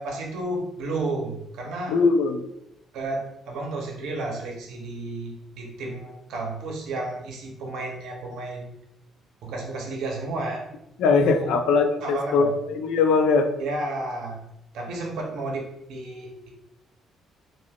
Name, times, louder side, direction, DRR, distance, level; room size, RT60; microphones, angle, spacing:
voice 1, 0.0-2.0 2.9-8.7 9.4-10.7 11.2-11.6 12.0-12.5 13.6-14.4 14.7-16.5, right 2 dB, 75° right, 1 dB, 0.7 m, -32 dB
voice 2, 1.9-2.4 11.0-13.5, left 4 dB, 85° left, 6 dB, 0.3 m, -21 dB
3.3 x 2.5 x 2.3 m, 0.83 s
cardioid pair, 165°, 0 cm